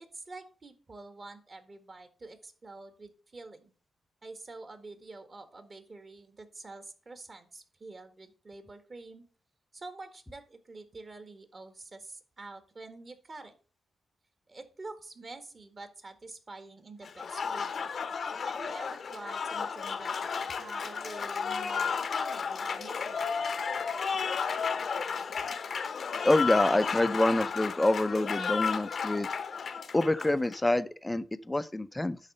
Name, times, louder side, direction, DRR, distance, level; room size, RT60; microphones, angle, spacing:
voice 1, 0.0-3.7 4.2-9.3 9.7-13.5 14.5-17.9 18.4-20.2 20.5-23.4, right 3 dB, 35° right, 1.7 m, -47 dB
Applause, 17.0-30.7, left 6 dB, 55° left, 0.8 m, -33 dB
voice 2, 26.2-29.3 29.9-32.2, left 1 dB, 10° left, 0.6 m, -26 dB
10.5 x 4.1 x 5.4 m
cardioid pair, 105°, 0 cm